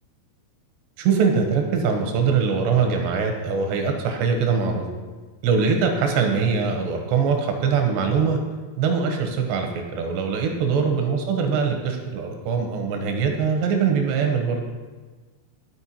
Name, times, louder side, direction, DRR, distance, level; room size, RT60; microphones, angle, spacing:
voice 1, 1.0-4.8 5.4-8.4 8.8-14.6, right 5 dB, 80° right, 4 dB, 2.9 m, -22 dB
12.5 x 4.4 x 4.2 m, 1.3 s
omnidirectional pair, 5.1 m